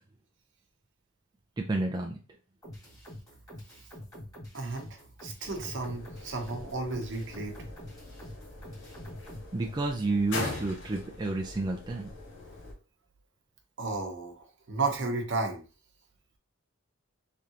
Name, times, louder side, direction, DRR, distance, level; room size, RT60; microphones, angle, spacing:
voice 1, 1.6-2.2 9.5-12.1, right 2 dB, 20° right, 1 dB, 0.4 m, -30 dB
sound 1, 2.6-9.5, left 1 dB, 15° left, 2.3 m, -46 dB
voice 2, 4.5-7.6 13.8-15.6, right 3 dB, 60° right, 4 dB, 0.9 m, -33 dB
sound 2, 5.4-12.7, left 2 dB, 60° left, 1.1 m, -42 dB
3.7 x 3.3 x 2.8 m, 0.34 s
head